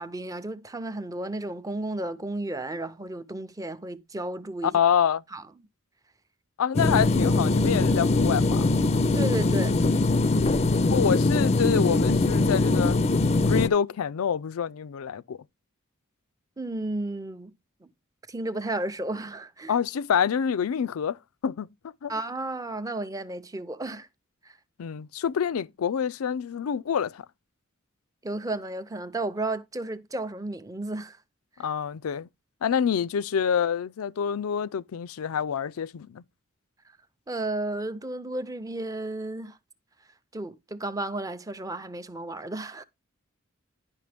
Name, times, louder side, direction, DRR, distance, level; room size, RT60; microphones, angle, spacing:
voice 1, 0.0-4.8 5.3-5.4 9.1-9.8 16.6-17.5 17.8-17.9 18.3-19.8 22.1-24.1 24.4-24.6 28.2-31.2 37.3-39.6 40.3-42.8, right 2 dB, 15° right, 0.6 m, -33 dB
voice 2, 4.6-5.2 6.6-8.7 10.9-13.0 13.4-15.4 19.7-21.7 22.0-22.1 24.8-27.2 31.6-32.3 32.6-36.2, left 7 dB, 90° left, 0.4 m, -27 dB
sound 1, 6.7-13.7, left 2 dB, 30° left, 0.4 m, -22 dB
10.5 x 5.7 x 3.4 m
head